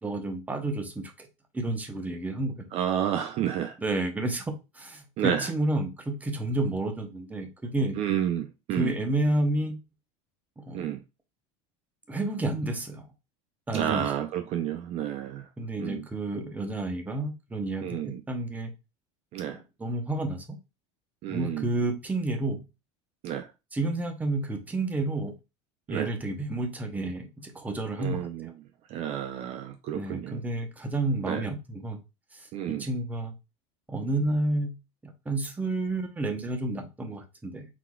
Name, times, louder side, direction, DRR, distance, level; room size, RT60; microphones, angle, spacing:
voice 1, 0.0-1.3 1.5-2.6 3.8-8.0 8.8-9.8 10.6-10.8 12.1-13.1 13.7-14.0 15.6-18.7 19.5-20.6 21.3-22.6 23.7-25.3 25.9-28.5 29.9-32.0 32.3-32.5 32.8-33.3 33.9-37.7, right 2 dB, 10° right, 0.8 m, -30 dB
voice 2, 2.7-3.8 5.2-5.5 8.0-8.9 10.7-11.0 13.7-15.5 15.8-16.0 17.8-18.2 19.3-19.6 21.2-21.7 23.2-23.5 25.9-26.1 28.0-28.5 28.9-30.4 31.2-31.5 32.5-32.9, right 10 dB, 40° right, 0.5 m, -30 dB
4.5 x 4.0 x 2.3 m
supercardioid pair, 140°, 15 cm